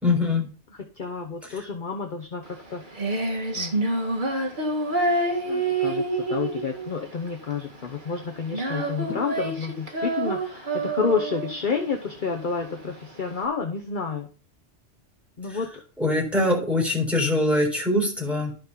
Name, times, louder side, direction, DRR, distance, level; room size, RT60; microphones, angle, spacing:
voice 1, 0.0-0.5 1.5-1.6 15.5-15.6 16.0-18.5, left 2 dB, ahead, -1 dB, 4.1 m, -23 dB
voice 2, 1.0-2.8 3.5-3.8 5.4-6.0 6.3-14.3 15.4-15.7, left 5 dB, 45° left, 3 dB, 1.1 m, -29 dB
Female singing, 2.4-13.4, right 2 dB, 45° right, 1.8 m, -28 dB
12.0 x 5.2 x 5.7 m, 0.39 s
omnidirectional pair, 1.2 m